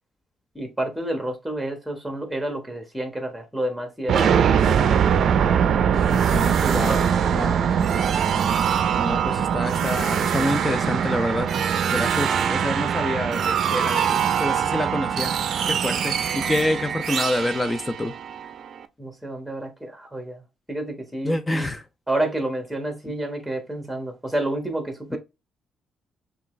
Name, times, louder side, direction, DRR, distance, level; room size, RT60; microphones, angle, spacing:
voice 1, 0.5-4.6 6.6-7.0 19.0-20.4 20.7-21.6 22.1-25.2, right 1 dB, ahead, 1.3 m, -29 dB
sound 1, 4.1-18.8, right 8 dB, 65° right, 0.5 m, -22 dB
voice 2, 6.1-7.0 7.3-7.9 9.0-11.5 11.9-15.3 15.7-18.1 21.2-21.8 23.1-23.2, left 1 dB, 20° left, 0.5 m, -27 dB
5.6 x 2.4 x 3.2 m
cardioid pair, 90°, 0 cm